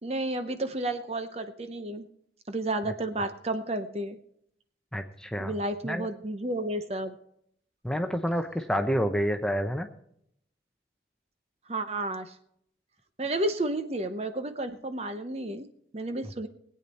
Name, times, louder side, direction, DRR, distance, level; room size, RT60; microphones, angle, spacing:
voice 1, 0.0-2.1 2.5-4.2 5.4-7.1 11.7-12.3 13.2-15.7 15.9-16.5, right 2 dB, 35° right, 9 dB, 0.7 m, -31 dB
voice 2, 4.9-5.5 5.8-6.1 7.8-9.9 16.2-16.3, equal, 5° left, 6 dB, 0.7 m, -28 dB
20.5 x 8.7 x 4.2 m, 0.71 s
head